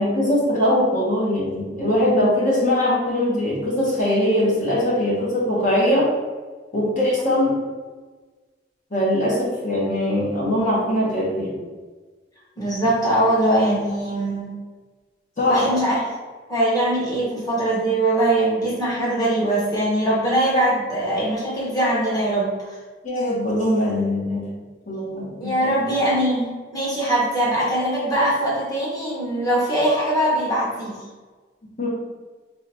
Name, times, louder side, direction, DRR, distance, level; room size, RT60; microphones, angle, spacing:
voice 1, 0.0-6.1 6.7-7.6 8.9-11.6 15.4-15.7 23.0-24.4 24.9-25.7 31.8-31.9, left 1 dB, 45° left, -6 dB, 1.1 m, -21 dB
voice 2, 12.6-14.5 15.5-16.0 16.5-22.5 25.4-31.0, right 1 dB, 20° left, -7 dB, 1.1 m, -21 dB
3.3 x 2.8 x 4.2 m, 1.4 s
head